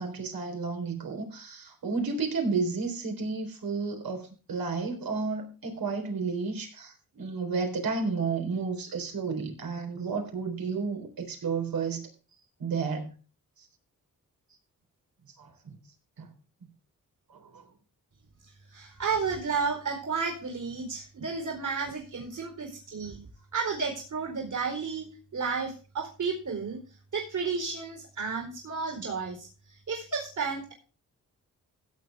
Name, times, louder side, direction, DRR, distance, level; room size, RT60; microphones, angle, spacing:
voice 1, 0.0-12.0 12.6-13.1 13.6-13.7 15.4-15.8 16.2-16.3 17.3-17.7, right 4 dB, 85° right, 4 dB, 3.9 m, -32 dB
voice 2, 18.4-23.2 23.5-26.8 27.1-30.7, right 5 dB, 60° right, 2 dB, 4.5 m, -32 dB
16.5 x 8.2 x 3.4 m, 0.35 s
cardioid pair, 70°, 34 cm